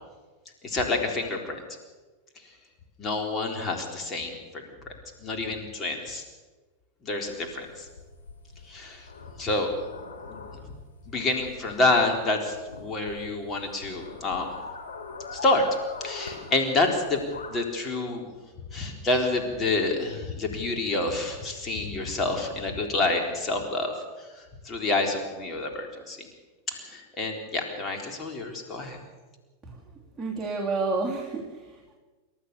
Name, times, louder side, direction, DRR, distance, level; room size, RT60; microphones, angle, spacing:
voice 1, 0.6-1.6 3.0-4.7 5.2-6.2 7.0-7.9 8.7-9.1 9.4-9.7 10.2-10.4 11.1-14.5 15.3-15.7 16.0-17.2 17.5-18.3 18.7-23.9 24.6-26.3 26.7-29.0, left 2 dB, 25° left, 3 dB, 4.1 m, -28 dB
sound 1, 7.2-17.5, left 4 dB, 70° left, 3.9 m, -42 dB
voice 2, 30.2-31.9, right 3 dB, 5° right, -5 dB, 3.2 m, -30 dB
29.0 x 13.0 x 7.0 m, 1.3 s
figure-of-eight pair, 90°, 0 cm